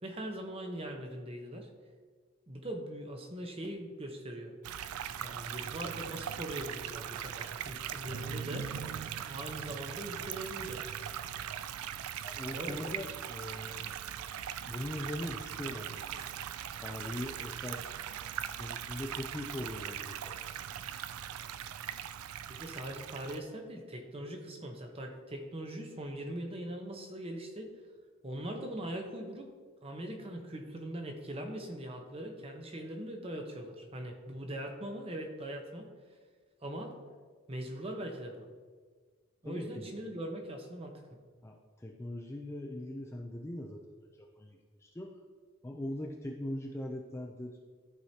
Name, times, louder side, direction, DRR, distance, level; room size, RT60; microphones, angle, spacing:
voice 1, 0.0-1.7 2.5-4.5 5.2-8.7 9.3-10.8 12.5-12.8 22.5-27.8 28.2-29.5 29.8-35.9 36.6-36.9 37.5-38.5 39.4-41.0, right 1 dB, 25° right, 3 dB, 0.9 m, -41 dB
sound 1, 4.6-23.4, right 9 dB, 80° right, 0.4 m, -40 dB
voice 2, 12.2-14.0 14.6-16.2 16.7-17.8 18.6-20.5 39.5-39.9 41.4-45.1 45.6-47.5, left 1 dB, 10° left, 0 dB, 0.4 m, -41 dB
13.5 x 4.8 x 2.8 m, 1.5 s
head